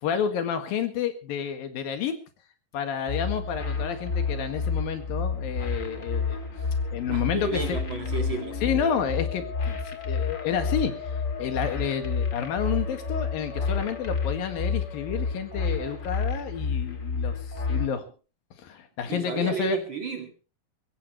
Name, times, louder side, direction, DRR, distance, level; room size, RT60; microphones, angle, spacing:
voice 1, 0.0-2.2 2.7-6.4 6.9-7.8 8.6-11.1 11.4-17.4 17.7-18.1 18.6-19.8, left 8 dB, 80° left, 3.6 m, -30 dB
sound 1, 3.1-17.9, left 4 dB, 30° left, 1.7 m, -30 dB
voice 2, 7.1-8.6 19.1-20.3, right 4 dB, 40° right, 2.2 m, -32 dB
Musical instrument, 7.4-16.2, left 8 dB, 55° left, 1.7 m, -42 dB
22.5 x 15.5 x 3.1 m
omnidirectional pair, 4.0 m